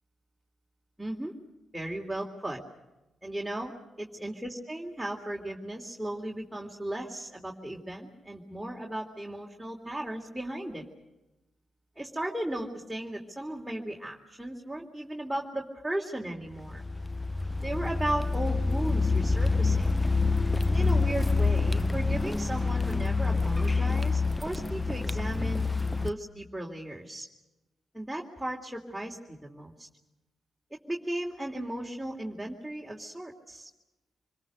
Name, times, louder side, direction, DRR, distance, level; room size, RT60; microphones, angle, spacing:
voice 1, 1.0-1.3 1.7-2.6 3.2-10.8 12.0-16.8 17.6-19.9 20.6-25.7 26.0-27.3 27.9-29.9 30.7-33.7, right 1 dB, 5° right, -2 dB, 3.1 m, -36 dB
Car, 16.6-26.1, left 3 dB, 15° left, 0.8 m, -27 dB
26.5 x 21.5 x 6.5 m, 0.99 s
supercardioid pair, 45°, 0 cm